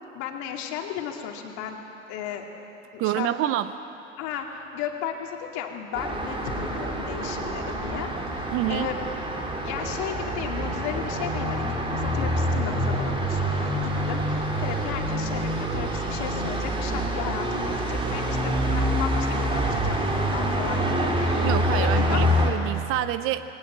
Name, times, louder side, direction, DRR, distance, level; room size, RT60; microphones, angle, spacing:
voice 1, 0.1-1.8 2.1-2.5 2.9-3.5 4.2-9.0 9.6-22.2, left 8 dB, 45° left, 2 dB, 2.5 m, -35 dB
voice 2, 3.0-3.7 8.5-8.9 21.4-23.4, right 13 dB, 35° right, 13 dB, 0.6 m, -27 dB
Traffic noise roadway noise, 5.9-22.5, equal, 15° right, 2.7 m, -26 dB
20.0 x 18.5 x 7.6 m, 2.9 s
hypercardioid pair, 95°, 38 cm